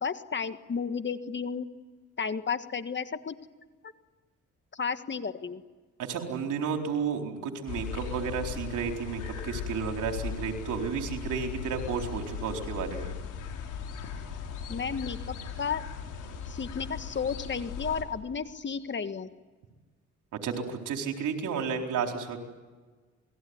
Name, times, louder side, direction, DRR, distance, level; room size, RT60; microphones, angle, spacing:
voice 1, 0.0-1.7 2.2-3.4 4.7-5.6 14.7-15.8 16.4-19.3, left 6 dB, 40° left, 10 dB, 1.6 m, -33 dB
voice 2, 6.0-13.1 20.4-22.4, right 6 dB, 80° right, 3 dB, 4.2 m, -32 dB
sound 1, 7.7-18.0, left 6 dB, 85° left, 4.9 m, -38 dB
28.5 x 20.5 x 9.7 m, 1.3 s
cardioid pair, 90°, 30 cm